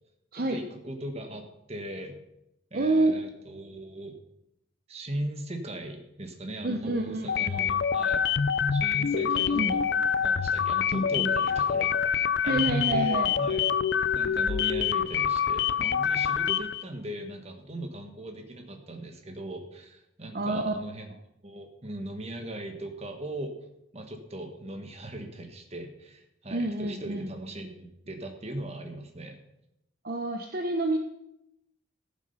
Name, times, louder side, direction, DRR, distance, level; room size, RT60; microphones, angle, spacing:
voice 1, 0.3-2.2 2.7-4.1 4.9-8.2 8.7-9.8 10.2-13.6 14.1-21.1 21.4-23.6 23.9-29.4, right 1 dB, 30° right, 5 dB, 1.5 m, -39 dB
voice 2, 2.7-3.1 6.6-7.6 9.1-9.7 12.4-13.3 20.3-20.7 26.5-27.3 30.0-31.0, right 2 dB, 50° right, 4 dB, 0.8 m, -28 dB
sound 1, 7.3-16.8, left 7 dB, 60° left, 0.5 m, -26 dB
14.0 x 7.3 x 5.5 m, 0.83 s
head